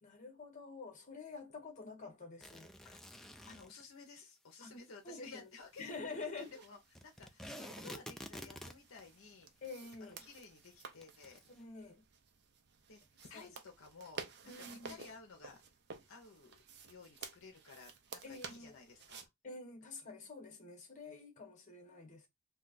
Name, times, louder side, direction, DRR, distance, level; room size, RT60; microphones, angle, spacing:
voice 1, 0.0-2.7 4.6-4.8 5.0-5.5 5.8-6.5 9.6-10.2 11.5-12.0 13.3-13.5 14.5-14.9 18.2-18.8 19.4-22.3, left 3 dB, 35° left, 1.1 m, -48 dB
sound 1, 2.4-3.8 7.0-9.0 9.6-9.7 9.9-10.0 11.0-11.4, equal, ahead, 0.3 m, -49 dB
voice 2, 2.8-9.6 10.0-11.4 12.9-15.6 16.1-16.5 16.8-19.3, left 4 dB, 65° left, 0.6 m, -55 dB
sound 2, 5.6-19.3, right 5 dB, 55° right, 0.5 m, -53 dB
2.7 x 2.3 x 3.8 m
head